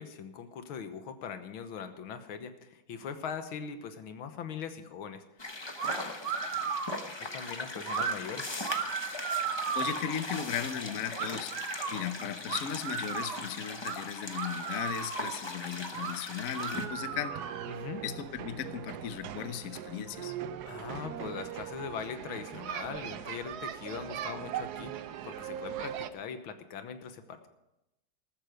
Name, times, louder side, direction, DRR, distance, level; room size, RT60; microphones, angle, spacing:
voice 1, 0.0-5.2 7.2-8.6 17.7-18.0 20.7-27.5, left 7 dB, 90° left, 9 dB, 2.0 m, -41 dB
sound 1, 5.4-16.9, left 2 dB, 20° left, 0.7 m, -40 dB
sound 2, 5.8-6.0 6.2-7.0 7.9-8.1 8.6-10.2 11.2-12.0 12.5-13.4 13.8-14.0 14.3-15.4 15.9-16.2 16.5-17.6, right 7 dB, 80° right, 2.0 m, -35 dB
voice 2, 9.7-11.5 11.9-17.5 18.0-20.3, left 9 dB, 55° left, 11 dB, 1.1 m, -36 dB
sound 3, 16.7-26.1, right 10 dB, 65° right, 1.1 m, -40 dB
14.0 x 13.5 x 5.1 m, 0.92 s
omnidirectional pair, 2.2 m